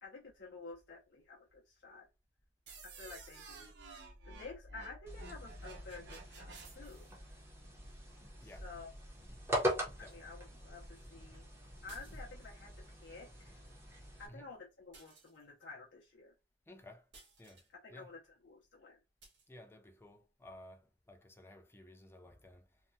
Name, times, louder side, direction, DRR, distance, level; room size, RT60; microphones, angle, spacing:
voice 1, 0.0-2.1 2.8-3.9 4.2-7.1 8.4-8.9 10.0-11.5 11.8-13.6 14.2-16.3 17.7-19.0, left 3 dB, 75° left, 0.6 m, -51 dB
sound 1, 2.7-7.1, right 2 dB, 65° right, 0.7 m, -52 dB
sound 2, 5.1-14.3, equal, 15° right, 0.7 m, -42 dB
voice 2, 8.4-8.7 10.0-10.3 14.3-14.5 16.7-17.1 17.4-17.6 17.9-18.2 19.5-22.8, left 1 dB, 15° left, 0.4 m, -56 dB
sound 3, 11.9-12.6 14.9-15.7 17.1-17.7 19.2-19.5, right 3 dB, 85° right, 1.1 m, -60 dB
2.8 x 2.1 x 2.6 m
head